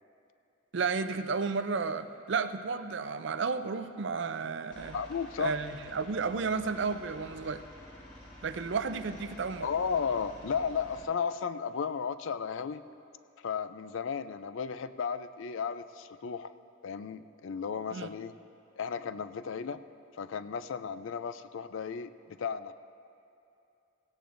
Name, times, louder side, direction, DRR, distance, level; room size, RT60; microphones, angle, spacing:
voice 1, 0.7-5.0 5.4-7.6 8.4-9.7 17.9-18.1, right 5 dB, 55° right, 11 dB, 0.5 m, -32 dB
Aircraft, 4.7-11.0, left 1 dB, 40° left, 3.5 m, -50 dB
voice 2, 4.9-5.6 9.6-12.8 13.4-16.5 16.8-18.3 18.8-19.8 20.2-22.1 22.4-22.7, left 6 dB, 70° left, 13 dB, 0.4 m, -34 dB
17.0 x 16.5 x 2.6 m, 2.7 s
head